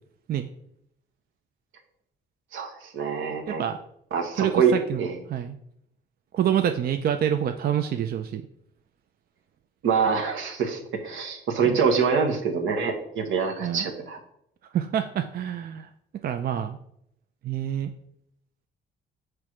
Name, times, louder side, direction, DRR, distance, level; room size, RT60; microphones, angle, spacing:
voice 1, 2.5-3.6 4.1-4.7 5.0-5.2 9.8-14.2, right 6 dB, 80° right, 4 dB, 1.1 m, -25 dB
voice 2, 3.5-3.8 4.4-5.6 6.3-8.4 11.6-11.8 13.6-13.9 14.7-15.9 16.2-16.8 17.4-17.9, right 10 dB, 50° right, 7 dB, 0.4 m, -27 dB
6.0 x 3.2 x 4.9 m, 0.73 s
cardioid pair, 90°, 20 cm